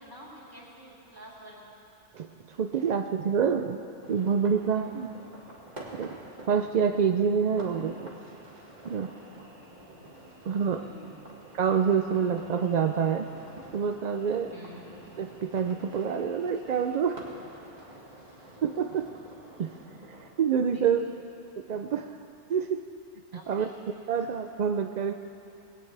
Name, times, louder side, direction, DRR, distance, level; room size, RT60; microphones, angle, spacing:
voice 1, 0.0-1.6 4.7-5.0 9.4-10.1 10.6-11.3 14.5-14.8 20.6-21.2 23.3-23.8 24.1-24.3, equal, 15° right, -6 dB, 3.4 m, -50 dB
voice 2, 2.1-3.8 4.1-5.1 5.9-6.2 6.5-8.1 8.8-9.1 10.5-10.9 11.5-13.3 13.7-14.5 15.2-17.2 18.6-19.1 19.6-19.7 20.4-21.1 21.6-22.1 22.5-22.8 23.5-23.7 24.1-25.1, right 7 dB, 60° right, 6 dB, 0.4 m, -27 dB
sound 1, 4.0-20.3, right 1 dB, 35° right, 1.9 m, -48 dB
20.5 x 17.0 x 3.3 m, 2.7 s
omnidirectional pair, 1.2 m